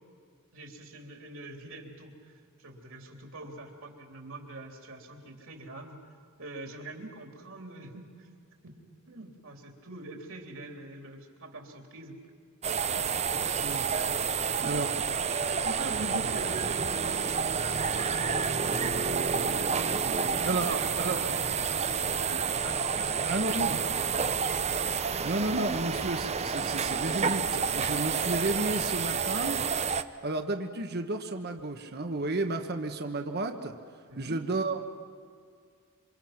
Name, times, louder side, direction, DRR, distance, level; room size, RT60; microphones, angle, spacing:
voice 1, 0.5-6.0 6.4-8.3 8.6-12.2 13.5-13.6 14.5-14.8 15.4-20.0 20.3-22.6 23.0-24.0 34.1-34.4, right 2 dB, 65° right, 2 dB, 3.4 m, -44 dB
sound 1, 12.6-30.0, right 6 dB, 30° right, 0.7 m, -29 dB
voice 2, 20.5-21.2 22.6-22.8 23.3-23.8 25.2-29.6 30.2-33.8 34.2-34.8, right 2 dB, 50° right, 5 dB, 1.3 m, -32 dB
27.5 x 25.5 x 5.9 m, 2.2 s
head